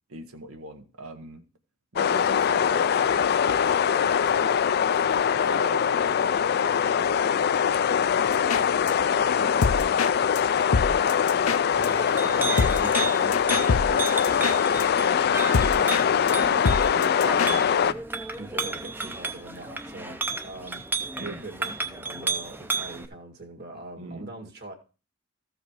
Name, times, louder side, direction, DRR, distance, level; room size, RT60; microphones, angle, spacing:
voice 1, 0.1-1.4 1.9-10.3 17.4-17.7 21.2-21.5 24.0-24.3, right 2 dB, 80° right, 1.2 m, -41 dB
sound 1, 2.0-17.9, left 8 dB, 50° left, 0.4 m, -23 dB
sound 2, 8.3-8.9 9.3-16.0 16.3-16.4 16.6-17.5, left 4 dB, 85° left, 0.7 m, -28 dB
Chink clink, 11.7-23.1, right 4 dB, 10° right, 0.6 m, -33 dB
voice 2, 11.8-17.8 18.3-20.8 21.2-24.7, right 2 dB, 50° right, 1.9 m, -42 dB
14.0 x 5.0 x 4.8 m
head